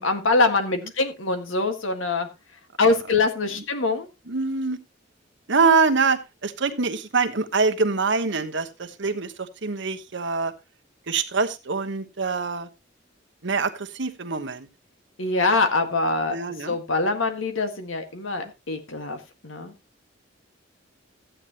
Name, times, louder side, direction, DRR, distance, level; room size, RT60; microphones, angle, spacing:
voice 1, 0.0-2.3 2.8-4.1 15.2-19.7, left 3 dB, 85° left, 7 dB, 1.7 m, -24 dB
voice 2, 4.3-4.8 5.5-9.3 9.6-10.5 11.1-12.7 13.4-14.7 16.3-16.8 18.4-18.5, right 4 dB, 65° right, 7 dB, 1.1 m, -24 dB
14.0 x 9.0 x 2.9 m, 0.25 s
head